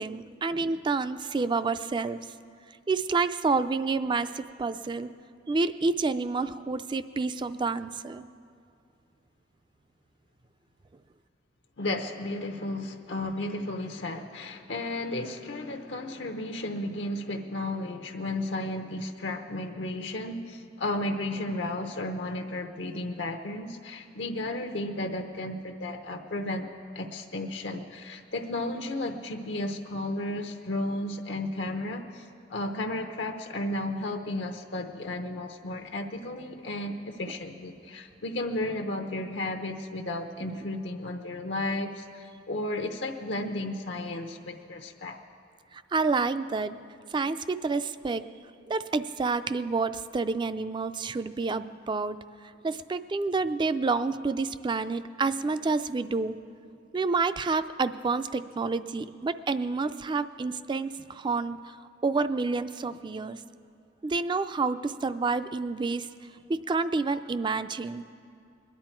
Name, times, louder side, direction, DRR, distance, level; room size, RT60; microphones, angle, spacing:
voice 1, 0.0-2.2 2.9-5.1 5.5-8.3 45.7-46.7 47.1-48.3 48.7-52.2 52.6-56.4 56.9-61.8 62.0-63.4 64.0-66.1 66.5-68.0, right 4 dB, 25° right, 13 dB, 0.3 m, -29 dB
voice 2, 11.8-26.7 26.9-45.2, left 1 dB, 75° left, 5 dB, 0.7 m, -33 dB
22.5 x 10.5 x 4.5 m, 2.4 s
head